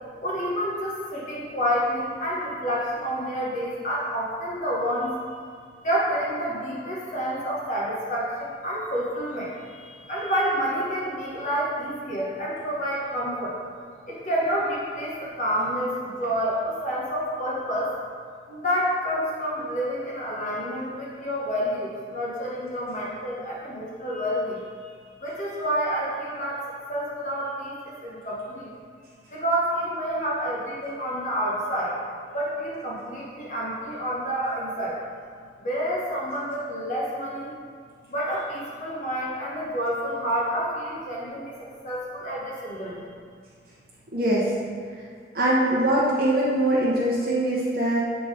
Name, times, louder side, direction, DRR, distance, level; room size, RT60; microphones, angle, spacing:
voice 1, 0.2-5.2 5.8-13.5 14.1-17.9 18.5-26.6 26.9-28.7 29.3-32.0 32.3-35.0 35.6-37.5 38.1-43.1, equal, 40° left, -6 dB, 1.2 m, -29 dB
voice 2, 44.1-44.5 45.3-48.0, right 1 dB, 55° right, -8 dB, 1.0 m, -22 dB
8.4 x 3.7 x 5.1 m, 2.1 s
head